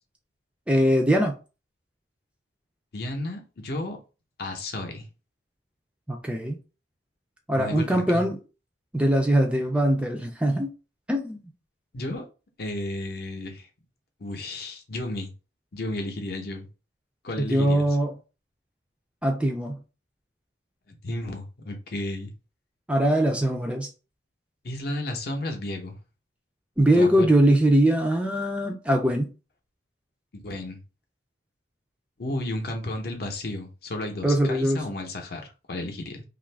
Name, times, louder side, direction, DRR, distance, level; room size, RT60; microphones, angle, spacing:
voice 1, 0.7-1.4 6.1-6.6 7.5-8.4 8.9-10.7 11.1-11.4 17.4-18.1 19.2-19.8 22.9-23.9 26.8-29.3 34.2-34.8, right 1 dB, 5° right, 0.3 m, -22 dB
voice 2, 2.9-4.0 4.4-5.0 7.5-8.2 11.9-12.3 12.6-13.7 14.2-15.3 15.7-16.7 17.2-17.8 20.9-22.3 24.6-26.0 26.9-27.3 30.3-30.8 32.2-36.2, left 1 dB, 55° left, 0.7 m, -33 dB
2.6 x 2.4 x 3.2 m
head